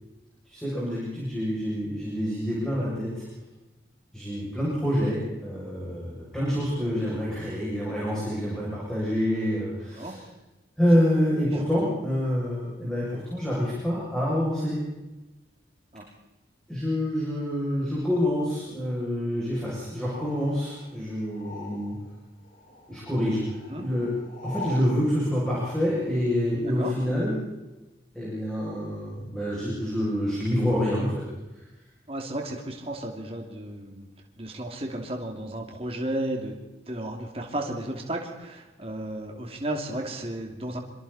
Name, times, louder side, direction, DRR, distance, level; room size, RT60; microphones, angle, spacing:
voice 1, 0.5-3.2 4.1-10.2 10.8-14.8 16.7-21.9 22.9-23.4 23.8-24.1 24.4-27.4 28.1-31.2, equal, 5° left, -7 dB, 7.5 m, -27 dB
sound 1, 19.9-22.2 22.4-24.9, left 2 dB, 45° left, 6.2 m, -43 dB
voice 2, 32.1-34.1 34.4-36.6 36.9-40.8, right 1 dB, 30° right, 1 dB, 2.8 m, -33 dB
27.0 x 24.5 x 4.4 m, 1.1 s
head